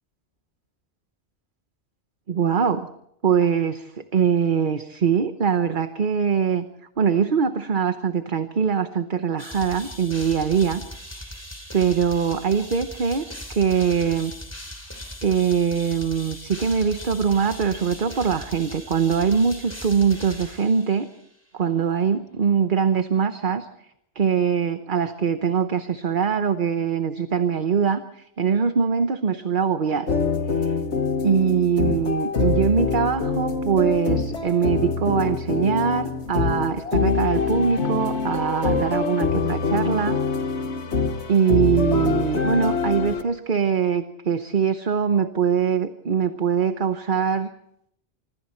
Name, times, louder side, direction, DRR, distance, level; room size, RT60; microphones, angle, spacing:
voice 1, 2.3-2.9 3.2-6.6 7.0-10.8 11.1-11.4 11.7-14.3 15.2-21.1 21.5-23.7 24.1-30.1 30.6-30.8 31.2-40.2 41.3-47.5, right 6 dB, 50° right, 9 dB, 1.1 m, -22 dB
sound 1, 9.4-21.3, left 1 dB, 15° left, 3.3 m, -39 dB
sound 2, 30.1-43.2, left 4 dB, 85° left, 1.8 m, -25 dB
26.0 x 25.5 x 4.4 m, 0.75 s
omnidirectional pair, 1.1 m